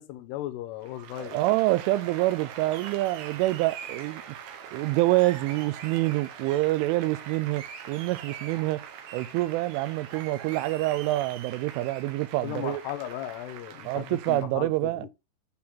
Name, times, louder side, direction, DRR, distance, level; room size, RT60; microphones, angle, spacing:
voice 1, 0.0-1.4 12.4-15.1, left 13 dB, 75° left, 2.6 m, -36 dB
Applause, 0.8-14.4, right 8 dB, 70° right, 2.5 m, -42 dB
voice 2, 1.2-4.2 4.7-8.9 9.1-12.8 13.9-15.1, right 18 dB, 90° right, 3.0 m, -26 dB
8.5 x 4.3 x 3.6 m
omnidirectional pair, 5.5 m